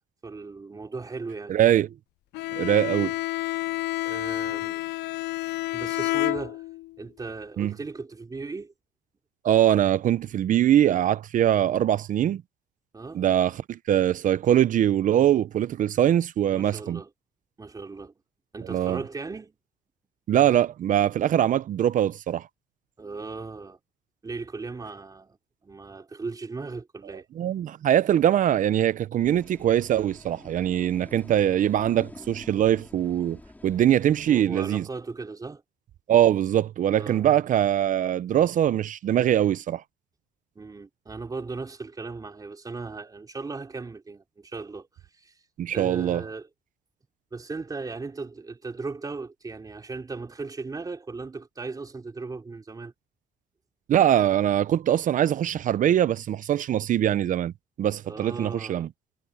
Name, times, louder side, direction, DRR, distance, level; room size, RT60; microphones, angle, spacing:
voice 1, 0.2-1.6 4.0-4.8 5.7-6.6 7.0-8.7 12.9-13.2 16.5-17.1 17.6-18.1 18.5-19.5 23.0-23.8 24.2-27.2 34.3-35.6 36.9-37.3 40.5-44.9 45.1-45.4 45.7-46.5 47.3-52.9 58.0-58.9, right 4 dB, 20° right, 3.3 m, -37 dB
voice 2, 1.5-1.9 2.5-3.1 7.6-7.7 9.4-12.4 13.1-17.0 18.7-19.0 20.3-22.5 27.4-34.8 36.1-39.8 45.6-46.2 53.9-57.5 57.8-58.9, right 11 dB, 50° right, 0.7 m, -22 dB
Bowed string instrument, 2.3-7.0, left 18 dB, 80° left, 0.4 m, -29 dB
sound 1, 29.2-34.5, left 2 dB, 10° left, 3.7 m, -47 dB
cardioid pair, 110°, 17 cm